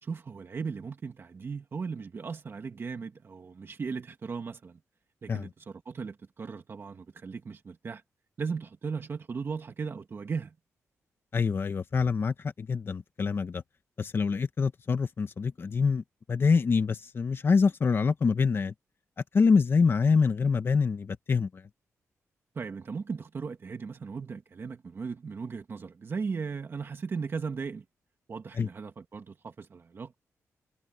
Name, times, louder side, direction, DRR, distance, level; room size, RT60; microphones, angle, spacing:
voice 1, 0.0-4.8 5.2-8.0 8.4-10.5 22.5-27.8 28.3-30.2, right 5 dB, 45° right, 2.1 m, -37 dB
voice 2, 11.3-13.6 14.0-16.0 16.3-18.7 19.3-21.6 28.6-28.7, left 5 dB, 45° left, 1.7 m, -25 dB
cardioid pair, 105°, 6 cm